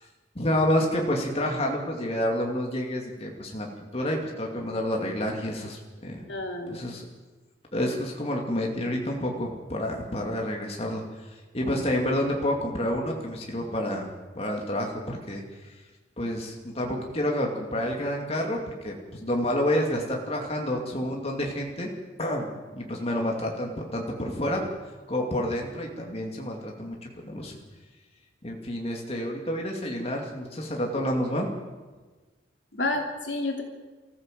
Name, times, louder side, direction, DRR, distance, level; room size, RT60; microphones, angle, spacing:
voice 1, 0.4-6.2 6.7-7.0 7.7-11.0 11.5-14.1 14.3-15.4 16.2-21.9 22.2-24.6 25.1-27.6 28.4-31.5, left 1 dB, 30° left, 0 dB, 2.5 m, -29 dB
voice 2, 6.2-6.8 32.7-33.6, left 2 dB, 70° left, 2 dB, 3.0 m, -30 dB
25.0 x 14.5 x 7.6 m, 1.3 s
head